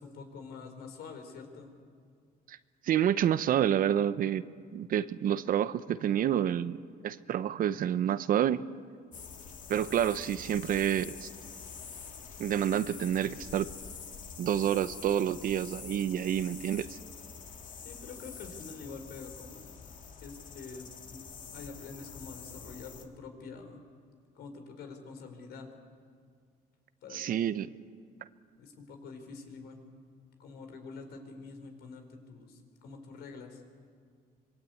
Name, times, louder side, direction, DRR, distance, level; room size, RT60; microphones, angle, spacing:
voice 1, 0.0-1.7 17.8-19.7 20.2-21.2 21.5-23.8 24.3-25.7 27.0-27.2 28.6-29.8 30.4-33.6, left 4 dB, 70° left, 5 dB, 4.6 m, -46 dB
voice 2, 2.8-4.4 4.7-8.7 9.7-11.3 12.4-13.7 14.4-17.0 27.1-27.7, right 10 dB, 55° right, 14 dB, 0.9 m, -28 dB
sound 1, 9.1-23.1, left 6 dB, 50° left, 2.5 m, -46 dB
26.0 x 22.0 x 8.5 m, 2.1 s
cardioid pair, 110°, 17 cm